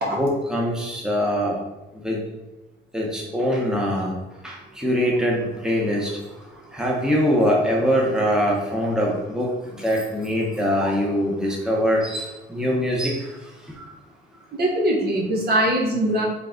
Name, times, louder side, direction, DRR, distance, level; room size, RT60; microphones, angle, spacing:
voice 1, 0.2-1.6 2.0-2.2 2.9-4.1 4.4-6.1 6.7-9.5 9.7-13.2, equal, 5° right, -2 dB, 1.0 m, -23 dB
voice 2, 14.5-16.3, right 1 dB, 55° right, -2 dB, 1.2 m, -22 dB
3.7 x 3.4 x 3.8 m, 1.0 s
cardioid pair, 90°, 20 cm